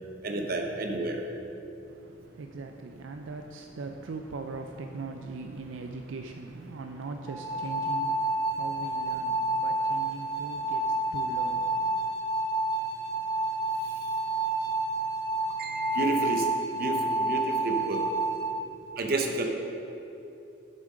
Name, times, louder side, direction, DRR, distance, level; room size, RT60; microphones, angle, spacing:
voice 1, 0.2-1.2 15.6-16.5 16.8-18.0 19.0-19.4, right 2 dB, 50° right, 3 dB, 0.9 m, -30 dB
voice 2, 1.9-12.1, right 3 dB, 80° right, 5 dB, 0.4 m, -40 dB
sound 1, 7.3-18.5, right 2 dB, 20° left, 1.0 m, -29 dB
8.0 x 7.4 x 5.0 m, 2.7 s
head